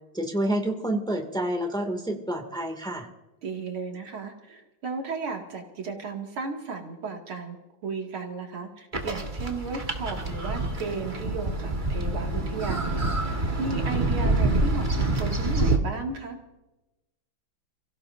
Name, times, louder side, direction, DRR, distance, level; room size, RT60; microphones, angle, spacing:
voice 1, 0.1-3.1, right 1 dB, ahead, 3 dB, 2.0 m, -28 dB
voice 2, 3.4-13.0 13.6-14.9 15.2-16.4, right 4 dB, 85° right, 1 dB, 3.1 m, -34 dB
sound 1, 8.9-15.8, right 2 dB, 25° right, 1.6 m, -26 dB
30.0 x 16.5 x 2.7 m, 0.98 s
omnidirectional pair, 2.3 m